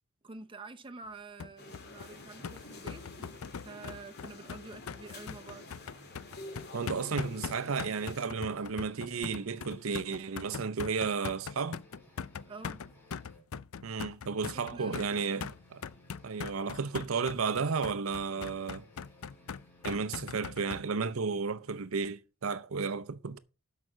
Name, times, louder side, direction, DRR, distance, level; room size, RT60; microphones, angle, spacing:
voice 1, 0.2-5.7 12.5-12.8 14.5-15.5, right 3 dB, 25° right, 0.9 m, -48 dB
sound 1, 1.4-20.8, left 6 dB, 85° left, 0.5 m, -41 dB
sound 2, 1.6-8.3, left 2 dB, 50° left, 2.2 m, -49 dB
sound 3, 2.1-3.7 4.1-4.3 4.6-7.4 7.7-7.8 8.2-10.1 10.6-10.7 11.1-13.5 14.8-16.7 18.0-20.4, left 1 dB, 10° left, 5.5 m, -60 dB
voice 2, 6.7-11.8 13.8-15.8 16.2-18.9 19.8-23.4, right 5 dB, 75° right, 0.7 m, -33 dB
12.5 x 5.8 x 5.0 m
head